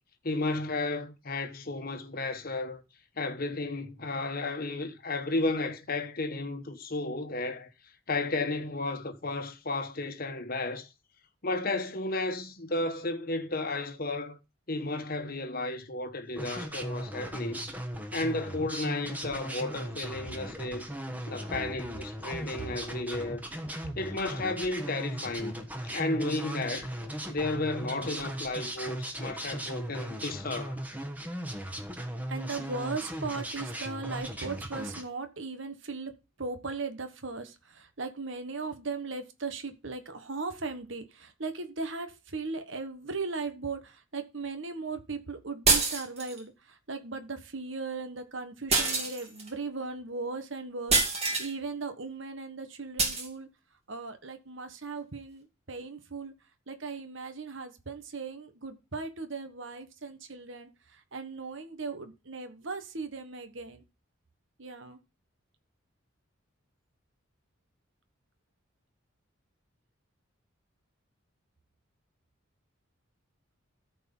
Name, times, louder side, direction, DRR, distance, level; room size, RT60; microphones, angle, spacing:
voice 1, 0.2-2.8 3.2-7.7 8.1-10.9 11.4-14.4 14.7-17.7 18.1-20.9 21.3-23.5 24.0-27.0 27.3-30.8, left 2 dB, 45° left, 1.2 m, -33 dB
sound 1, 16.4-35.0, right 1 dB, 10° right, 1.2 m, -38 dB
voice 2, 32.3-36.1 36.4-53.5 53.9-56.3 56.7-63.8 64.6-65.0, right 4 dB, 65° right, 1.3 m, -38 dB
sound 2, 45.7-46.4 48.7-49.5 50.9-51.5 53.0-53.3, right 3 dB, 30° right, 2.3 m, -26 dB
14.0 x 4.7 x 5.5 m
head